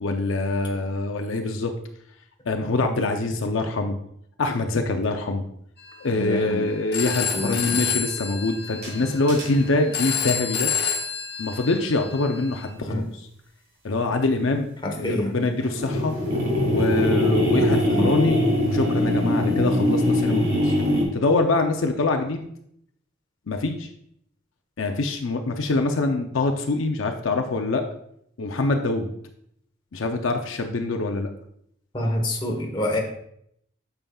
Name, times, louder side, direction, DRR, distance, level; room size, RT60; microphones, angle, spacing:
voice 1, 0.0-1.7 2.5-3.9 4.4-5.4 6.0-10.7 11.4-13.3 13.8-14.7 14.9-16.1 16.6-18.4 18.7-20.7 21.1-22.5 23.5-23.9 24.8-27.8 28.4-29.1 29.9-31.3, left 2 dB, 70° left, 5 dB, 0.6 m, -24 dB
Telephone, 5.8-12.7, left 7 dB, 50° left, 0.9 m, -30 dB
voice 2, 6.2-6.7 7.3-7.8 12.9-13.0 14.8-15.4 17.8-18.2 31.9-33.0, left 1 dB, 25° left, 1 dB, 1.2 m, -27 dB
sound 1, 8.8-9.7 15.6-21.0, left 1 dB, 50° right, 2.6 m, -22 dB
8.9 x 6.9 x 2.3 m, 0.71 s
head